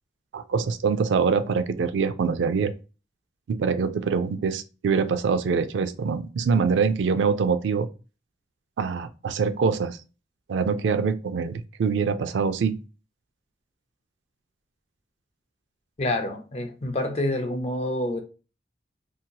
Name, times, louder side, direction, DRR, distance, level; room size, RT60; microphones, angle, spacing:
voice 1, 0.3-2.7 3.5-7.9 8.8-10.0 10.5-12.8, right 5 dB, 90° right, 0.3 m, -24 dB
voice 2, 16.0-18.2, left 1 dB, 35° left, 0.5 m, -27 dB
2.7 x 2.7 x 2.2 m
head